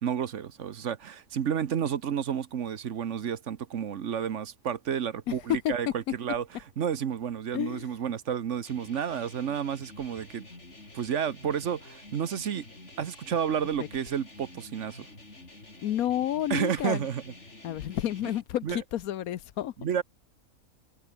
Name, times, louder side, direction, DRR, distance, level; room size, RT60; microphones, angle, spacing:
voice 1, 0.0-6.4 6.8-10.5 10.9-12.7 13.0-15.1 16.5-17.2 18.6-18.8 19.8-20.0, right 8 dB, 60° right, 1.2 m, -31 dB
voice 2, 7.5-7.9 13.8-13.9 15.8-17.1 17.6-19.7, left 12 dB, 85° left, 1.3 m, -30 dB
sound 1, 8.7-18.4, left 2 dB, 50° left, 5.5 m, -49 dB
omnidirectional pair, 1.5 m